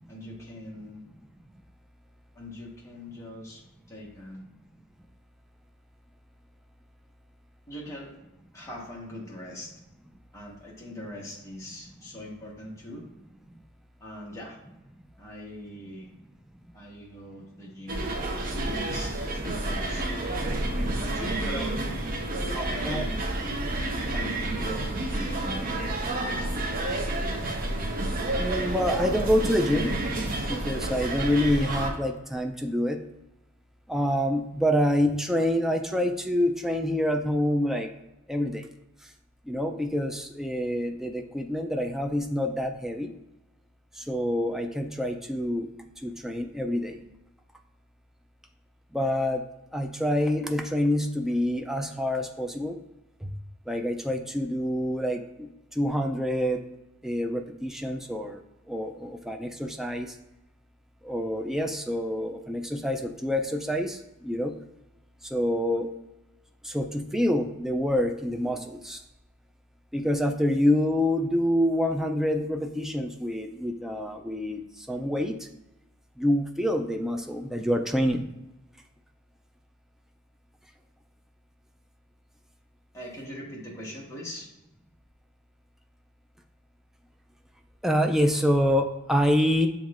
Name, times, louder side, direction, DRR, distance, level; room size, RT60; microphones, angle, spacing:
voice 1, 0.1-1.1 2.3-3.6 3.9-4.5 7.7-8.1 8.5-9.7 10.3-13.0 14.0-14.6 15.2-16.1 16.7-18.0 18.4-20.1 20.5-20.6 21.0-22.0 22.5-23.2 23.8-25.6 26.2-26.6 82.9-84.5, left 1 dB, 15° left, -4 dB, 1.1 m, -41 dB
sound 1, 17.9-31.9, right 1 dB, 40° right, 0.6 m, -30 dB
voice 2, 28.4-30.0 30.3-33.0 33.9-37.9 38.3-38.7 39.0-39.1 39.4-43.1 43.9-45.7 46.0-47.0 48.9-49.4 49.7-52.8 53.2-53.3 53.7-56.6 57.0-58.4 58.7-60.2 61.0-64.5 65.2-65.9 66.6-69.0 69.9-75.5 76.2-78.2 87.8-89.7, equal, ahead, 4 dB, 0.3 m, -27 dB
7.1 x 3.0 x 2.4 m, 0.95 s
head